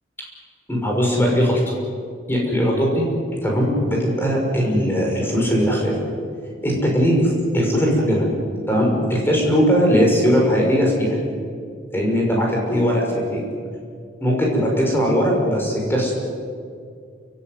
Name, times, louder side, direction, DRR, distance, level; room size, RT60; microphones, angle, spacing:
voice 1, 0.7-1.7 2.3-3.1 3.4-6.0 6.6-8.3 8.7-11.2 11.9-13.4 14.2-16.1, equal, 10° left, -1 dB, 6.1 m, -19 dB
28.5 x 17.0 x 9.6 m, 2.2 s
head